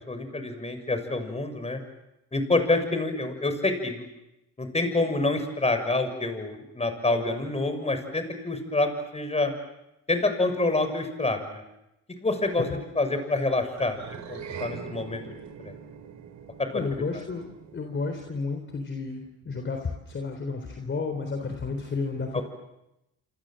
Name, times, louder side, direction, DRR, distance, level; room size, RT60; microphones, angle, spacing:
voice 1, 0.1-1.8 2.3-4.0 4.6-9.5 10.1-11.6 12.2-12.7 12.9-15.2 15.6-15.7 16.6-16.7 17.1-17.2 22.3-22.4, left 2 dB, 20° left, 8 dB, 6.6 m, -27 dB
sound 1, 13.7-18.3, right 7 dB, 70° right, 5.8 m, -42 dB
voice 2, 16.7-17.5 17.7-22.4, left 4 dB, 40° left, 4 dB, 3.9 m, -32 dB
28.0 x 27.0 x 7.8 m, 0.89 s
cardioid pair, 90°, 30 cm